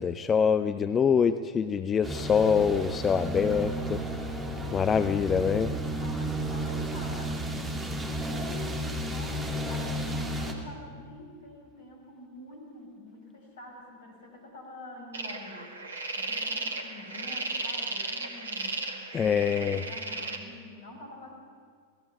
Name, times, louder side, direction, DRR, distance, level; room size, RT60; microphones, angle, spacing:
voice 1, 0.0-4.0 4.7-5.7 19.1-19.8, left 7 dB, 20° left, 11 dB, 0.6 m, -25 dB
sound 1, 2.0-10.5, right 1 dB, 15° right, 2.6 m, -32 dB
voice 2, 6.0-18.8 19.1-21.4, left 1 dB, 60° left, 1 dB, 5.9 m, -47 dB
sound 2, 15.1-20.4, right 3 dB, 70° right, 1.9 m, -35 dB
28.0 x 18.5 x 5.8 m, 2.1 s
figure-of-eight pair, 90°, 0 cm